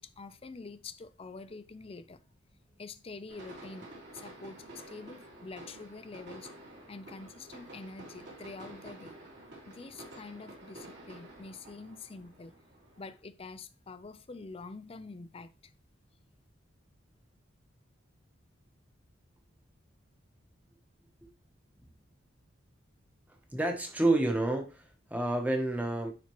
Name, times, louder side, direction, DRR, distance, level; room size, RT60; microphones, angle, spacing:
voice 1, 0.0-2.2 2.8-6.5 6.9-9.1 9.7-12.5 13.0-15.5, left 3 dB, 30° left, 0.4 m, -46 dB
sound 1, 3.3-13.2, right 1 dB, 55° right, 3.2 m, -50 dB
voice 2, 23.5-26.1, right 2 dB, 10° right, 1.1 m, -29 dB
10.0 x 4.4 x 3.1 m
head